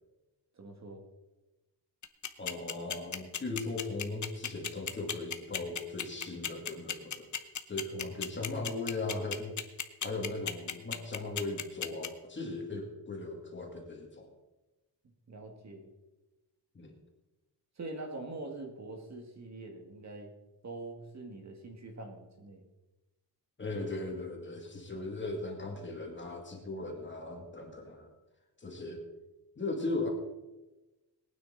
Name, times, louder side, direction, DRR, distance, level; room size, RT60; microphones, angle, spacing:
voice 1, 0.5-1.0 15.3-15.9 17.8-20.3 20.6-22.6, right 2 dB, 40° right, 3 dB, 1.9 m, -44 dB
sound 1, 2.0-12.1, left 8 dB, 40° left, 0.9 m, -34 dB
voice 2, 2.4-7.3 7.7-9.5 10.0-14.3 16.7-16.9 23.6-28.1 28.6-29.0 29.6-30.1, left 2 dB, 25° left, 2 dB, 2.3 m, -38 dB
21.5 x 9.4 x 3.9 m, 1.1 s
wide cardioid pair, 155°, 42 cm